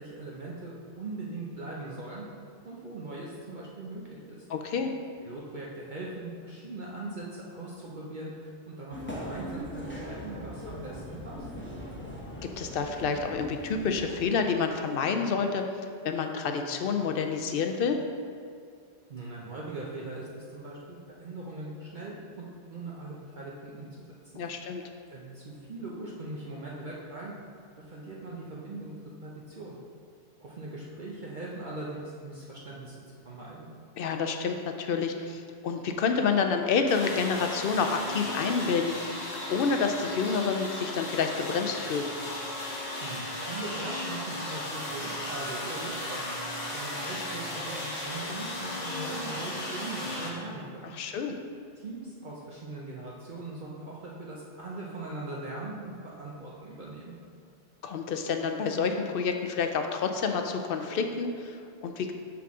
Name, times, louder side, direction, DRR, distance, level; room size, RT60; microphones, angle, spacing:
voice 1, 0.0-2.3 2.6-4.4 5.2-11.5 19.1-24.1 25.1-27.3 27.7-29.8 30.4-33.7 43.0-50.9 51.8-57.2, right 2 dB, 50° right, -5 dB, 0.8 m, -40 dB
voice 2, 4.5-4.9 12.4-15.6 16.0-18.0 24.4-24.8 34.0-42.1 50.9-51.3 57.8-62.1, left 5 dB, 65° left, 5 dB, 0.7 m, -29 dB
train station general ambience, 8.9-14.2, equal, 10° left, 0.9 m, -40 dB
sound 1, 36.9-50.3, left 1 dB, 40° left, 1.1 m, -35 dB
5.9 x 5.9 x 3.6 m, 2.2 s
omnidirectional pair, 1.1 m